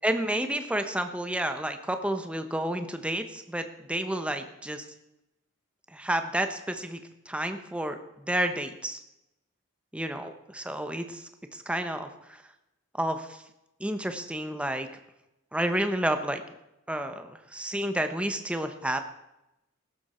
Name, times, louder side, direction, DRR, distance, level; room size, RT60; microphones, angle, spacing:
voice 1, 0.0-4.8 5.9-7.0 7.3-8.0 8.3-9.0 9.9-12.4 12.9-13.4 13.8-14.9 15.5-16.4 16.9-19.0, right 1 dB, 5° right, 7 dB, 1.0 m, -30 dB
15.5 x 12.0 x 4.4 m, 0.89 s
head